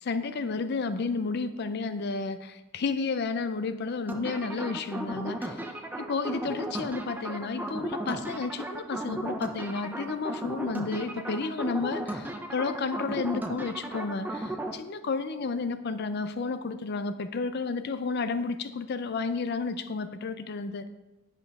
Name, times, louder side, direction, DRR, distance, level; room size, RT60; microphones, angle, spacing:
voice 1, 0.0-5.6 6.0-20.9, left 4 dB, 55° left, 11 dB, 0.4 m, -32 dB
sound 1, 4.1-14.7, right 1 dB, 10° right, 0.5 m, -35 dB
10.0 x 5.3 x 4.7 m, 1.0 s
head